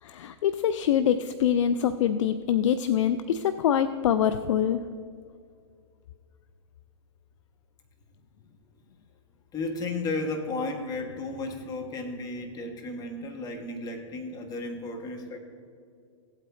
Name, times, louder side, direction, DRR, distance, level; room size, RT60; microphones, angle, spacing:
voice 1, 0.0-4.8, left 9 dB, 65° left, 11 dB, 0.4 m, -24 dB
voice 2, 9.5-15.4, left 2 dB, 25° left, 3 dB, 1.3 m, -34 dB
15.5 x 8.4 x 2.6 m, 2.3 s
hypercardioid pair, 120°, 17 cm